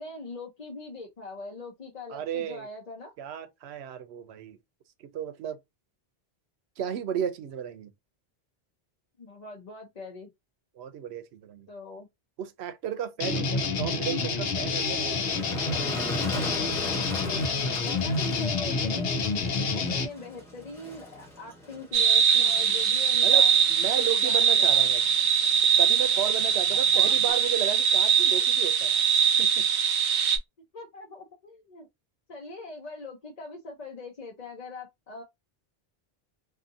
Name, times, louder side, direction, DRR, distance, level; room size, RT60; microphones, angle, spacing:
voice 1, 0.0-3.1 9.2-10.3 11.7-12.1 17.0-19.2 19.7-23.5 24.0-24.9 26.7-27.4 28.3-28.5 30.7-31.9 32.3-35.2, left 3 dB, 45° left, 0.7 m, -42 dB
voice 2, 2.1-2.7 3.2-4.6 5.0-5.6 6.8-7.9 10.8-11.7 12.4-15.5 23.2-25.0 25.8-29.0 29.4-29.7, right 9 dB, 90° right, 0.9 m, -34 dB
sound 1, 13.2-20.1, left 4 dB, 70° left, 0.9 m, -28 dB
Motor vehicle (road), 14.6-27.3, equal, 5° left, 1.0 m, -41 dB
sound 2, 21.9-30.4, right 7 dB, 55° right, 0.6 m, -22 dB
2.6 x 2.6 x 2.5 m
omnidirectional pair, 1.1 m